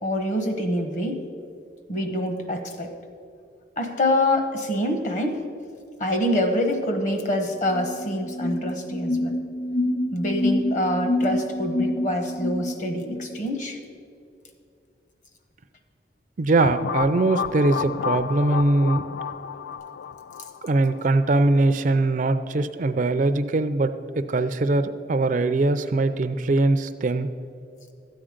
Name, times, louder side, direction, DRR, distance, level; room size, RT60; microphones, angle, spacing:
voice 1, 0.0-1.2 1.9-2.9 3.8-5.4 6.0-9.3 10.1-13.8, left 1 dB, 40° left, 5 dB, 1.1 m, -25 dB
sound 1, 7.6-13.3, left 1 dB, 60° left, 3.3 m, -27 dB
voice 2, 16.4-19.0 20.6-23.9 24.2-27.3, right 2 dB, 45° right, 10 dB, 0.4 m, -21 dB
sound 2, 16.6-21.3, left 7 dB, 90° left, 0.3 m, -31 dB
13.0 x 8.6 x 5.1 m, 2.4 s
head